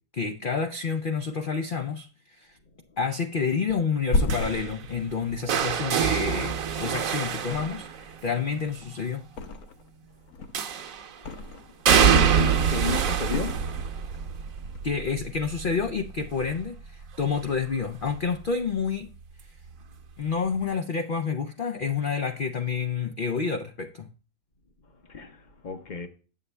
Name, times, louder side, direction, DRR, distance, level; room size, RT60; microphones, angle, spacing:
voice 1, 0.1-2.1 2.4-2.5 3.0-9.3 14.8-19.1 20.2-24.1, left 5 dB, 85° left, 0.4 m, -29 dB
Thump thud, 3.7-7.0 7.4-8.2 8.5-9.9 10.3-11.8 12.2-12.7 13.3-14.3 14.6-14.8, left 2 dB, 65° left, 1.3 m, -33 dB
sound 1, 4.3-8.3 10.5-11.1 11.9-17.7 18.0-18.4 19.7-19.8, right 7 dB, 60° right, 1.1 m, -26 dB
voice 2, 11.9-13.6 25.1-26.1, left 5 dB, 40° left, 0.6 m, -33 dB
8.2 x 7.5 x 3.2 m
omnidirectional pair, 1.7 m